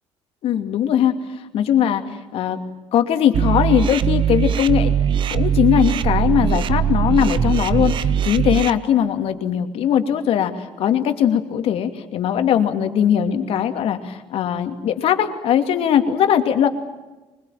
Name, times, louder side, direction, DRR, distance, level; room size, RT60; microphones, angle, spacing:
voice 1, 0.4-1.2 1.5-2.0 2.3-2.6 2.9-4.9 5.3-7.9 8.2-10.5 10.8-16.7, left 9 dB, 65° left, 7 dB, 2.8 m, -19 dB
sound 1, 3.3-8.7, right 8 dB, 50° right, 1.0 m, -20 dB
24.0 x 21.5 x 9.1 m, 1.1 s
cardioid pair, 120°, 11 cm